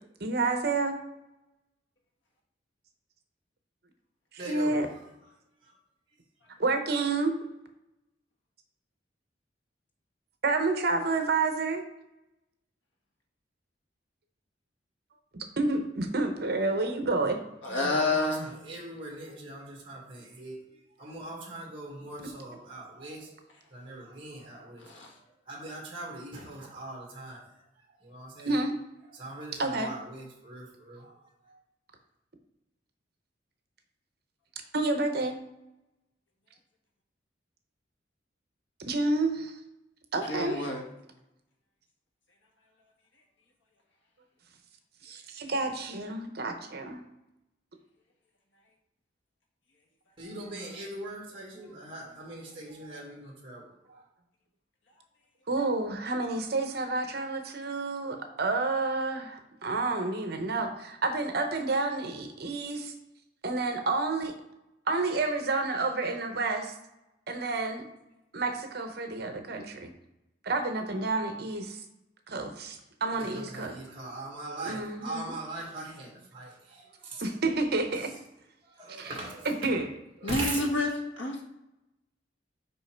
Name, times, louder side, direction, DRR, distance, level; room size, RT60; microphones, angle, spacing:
voice 1, 0.2-1.0 4.5-4.9 6.6-7.4 10.4-11.8 15.6-17.4 28.4-28.7 29.6-29.9 34.7-35.4 38.9-39.5 40.1-40.7 45.0-47.0 55.5-62.9 63.4-64.3 64.9-66.7 67.3-67.8 68.3-69.9 70.4-71.8 72.3-73.8 74.6-75.3 77.2-78.1 79.0-79.1 79.5-79.9, right 3 dB, 55° right, 6 dB, 0.8 m, -29 dB
voice 2, 4.4-5.3 5.6-5.8 6.4-6.5 17.6-23.3 23.7-28.6 29.1-31.6 50.2-54.0 73.1-77.4 77.9-78.2 78.6-79.9 80.2-80.7, right 2 dB, 30° right, -3 dB, 1.7 m, -41 dB
voice 3, 17.6-18.5 24.8-25.1 40.3-40.8 80.2-80.9 81.2-81.4, left 2 dB, 85° left, 1 dB, 1.4 m, -28 dB
5.5 x 5.0 x 4.5 m, 0.90 s
head